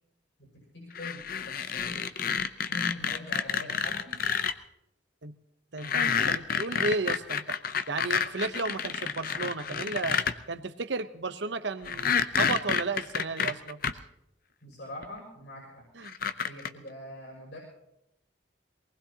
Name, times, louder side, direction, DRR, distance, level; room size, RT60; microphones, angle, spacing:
voice 1, 0.4-2.1 2.7-4.2 14.6-15.8 16.4-17.6, left 1 dB, 70° left, -2 dB, 6.3 m, -43 dB
sound 1, 0.9-4.5 5.8-10.3 11.8-13.9 15.0-15.1 16.0-16.7, left 7 dB, 50° left, 0.7 m, -29 dB
voice 2, 5.7-7.6 7.9-10.2 10.5-14.0 16.0-16.1, right 3 dB, 70° right, 11 dB, 0.9 m, -33 dB
23.5 x 19.5 x 2.9 m, 0.83 s
head